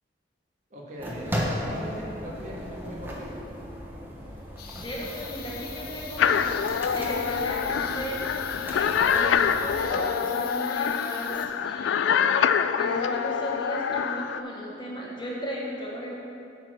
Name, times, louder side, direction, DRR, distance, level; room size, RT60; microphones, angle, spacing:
voice 1, 0.7-3.4, equal, 40° right, -4 dB, 1.5 m, -39 dB
sound 1, 1.0-9.9, equal, 10° right, 1.0 m, -37 dB
sound 2, 4.6-11.5, left 8 dB, 55° left, 0.7 m, -42 dB
voice 2, 4.7-12.3 12.8-16.1, equal, 25° left, -3 dB, 1.1 m, -35 dB
sound 3, 6.2-14.4, left 7 dB, 90° left, 0.3 m, -25 dB
8.4 x 4.8 x 6.1 m, 2.7 s
head